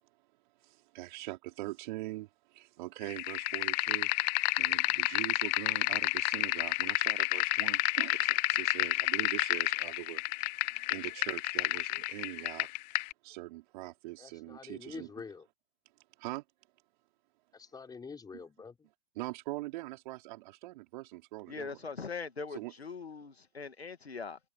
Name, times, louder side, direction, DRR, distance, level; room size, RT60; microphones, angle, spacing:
voice 1, 0.6-4.1 4.6-12.7 13.2-15.1 16.2-16.4 19.2-21.9 22.5-22.7, right 19 dB, 50° right, 4.4 m, -42 dB
sound 1, 3.1-13.1, left 24 dB, 45° left, 1.3 m, -30 dB
voice 2, 14.2-15.5 17.5-18.9, left 5 dB, 10° left, 4.5 m, -46 dB
voice 3, 21.5-24.4, left 4 dB, 90° left, 2.1 m, -41 dB
figure-of-eight pair, 110°, 31 cm